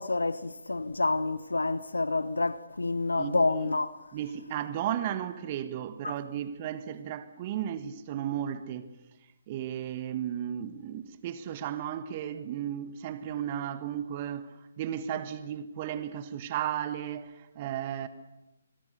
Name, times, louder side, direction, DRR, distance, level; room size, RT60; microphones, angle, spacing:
voice 1, 0.0-4.0 6.0-6.1, left 3 dB, 80° left, 0.9 m, -28 dB
voice 2, 3.1-3.7 4.1-8.9 9.5-18.1, right 10 dB, 35° right, 1.5 m, -34 dB
25.0 x 21.5 x 6.7 m
figure-of-eight pair, 135°, 0 cm